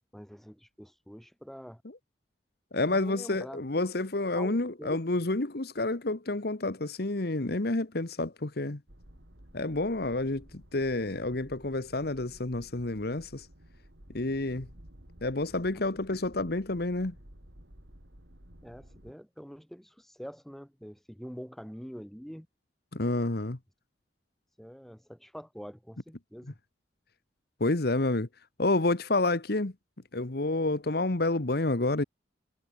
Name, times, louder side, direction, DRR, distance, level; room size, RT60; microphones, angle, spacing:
voice 1, 0.1-1.8 2.8-3.6 4.3-5.0 15.5-15.7 15.9-16.0 18.6-22.5 24.6-26.6, equal, ahead, 4.5 m, -45 dB
voice 2, 2.7-8.8 9.5-10.4 10.7-13.4 14.1-14.7 15.2-17.1 22.9-23.6 27.6-28.3 28.6-29.7 30.1-32.0, left 2 dB, 60° left, 1.4 m, -29 dB
sound 1, 8.9-19.1, equal, 90° right, 4.8 m, -53 dB
head